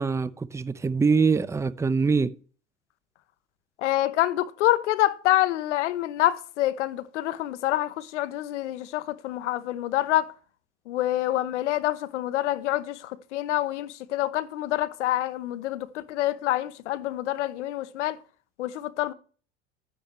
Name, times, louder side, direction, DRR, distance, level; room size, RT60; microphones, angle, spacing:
voice 1, 0.0-2.4, right 4 dB, 10° right, 0.6 m, -24 dB
voice 2, 3.8-10.3 10.9-18.2 18.6-19.1, left 14 dB, 85° left, 0.9 m, -27 dB
10.5 x 9.8 x 3.1 m
hypercardioid pair, 80°, 35 cm